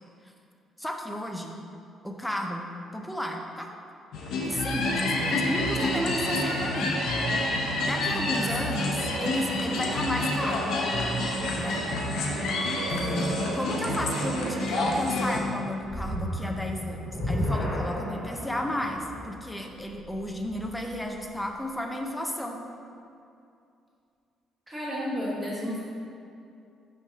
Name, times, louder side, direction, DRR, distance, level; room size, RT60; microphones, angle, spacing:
voice 1, 0.8-1.6 2.0-2.7 2.9-3.7 4.5-7.0 7.8-10.7 11.5-11.8 12.2-12.3 12.9-22.6, left 1 dB, 5° left, 2 dB, 0.4 m, -33 dB
sound 1, 4.1-15.4, left 2 dB, 70° left, 0.8 m, -28 dB
sound 2, 4.8-15.0, right 5 dB, 90° right, 0.4 m, -36 dB
voice 2, 8.1-8.8 24.7-25.8, equal, 10° right, -5 dB, 1.1 m, -33 dB
sound 3, 15.8-21.1, left 1 dB, 40° left, 1.2 m, -33 dB
6.3 x 3.4 x 5.5 m, 2.5 s
cardioid pair, 175°, 0 cm